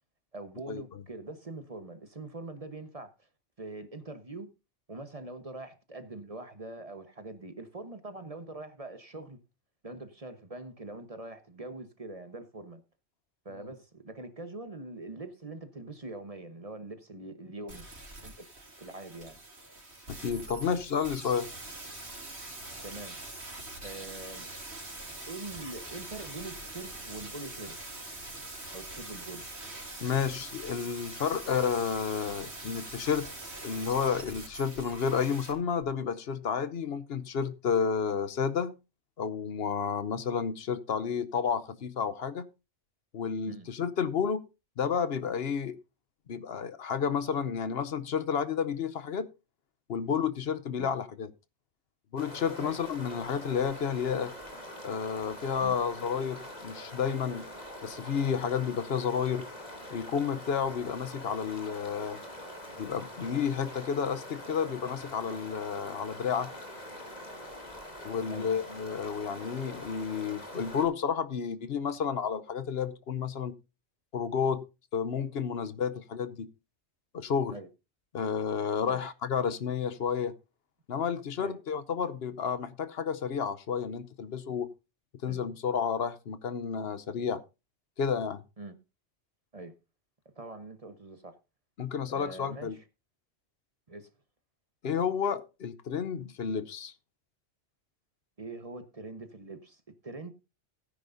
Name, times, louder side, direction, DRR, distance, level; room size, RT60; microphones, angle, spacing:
voice 1, 0.3-3.1 3.6-4.5 4.9-9.4 9.8-12.8 13.4-17.8 18.2-18.5 18.8-19.4 22.8-23.2 23.8-24.5 25.3-27.8 28.7-29.4 43.5-43.7 50.8-50.9 52.6-52.8 55.6-55.8 68.3-68.5 77.5-77.7 78.8-79.0 81.4-81.6 85.3-85.4 88.6-88.7 89.5-89.7 90.4-91.3 92.1-92.8 93.9-94.1 98.4-100.3, right 2 dB, 35° right, 1.1 m, -43 dB
sound 1, 17.7-35.5 35.8-35.9, right 2 dB, 65° right, 3.7 m, -43 dB
voice 2, 20.1-21.5 30.0-33.3 33.6-38.7 39.2-42.5 43.1-44.4 44.8-45.8 46.3-49.3 49.9-51.3 52.1-54.3 54.8-57.5 57.8-59.5 59.9-62.2 62.8-66.5 68.0-73.5 74.1-74.6 74.9-76.5 77.1-77.6 78.1-80.3 80.9-84.7 85.2-87.4 88.0-88.4 91.8-92.8 94.8-96.9, left 7 dB, 65° left, 1.0 m, -31 dB
sound 2, 52.2-70.8, left 1 dB, 35° left, 3.0 m, -44 dB
16.5 x 9.8 x 2.6 m
omnidirectional pair, 1.2 m